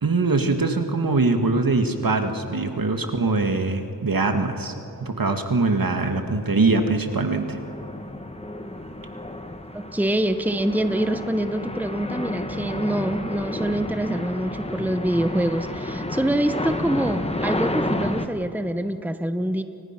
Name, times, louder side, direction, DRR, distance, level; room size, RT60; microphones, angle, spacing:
voice 1, 0.0-4.7 5.0-7.6, right 3 dB, 60° right, 6 dB, 2.0 m, -22 dB
sound 1, 5.3-5.5 5.9-18.2, left 1 dB, 15° left, 1.4 m, -31 dB
voice 2, 9.7-19.6, right 1 dB, 5° right, 9 dB, 1.0 m, -25 dB
29.5 x 24.5 x 6.0 m, 2.8 s
wide cardioid pair, 65°, 38 cm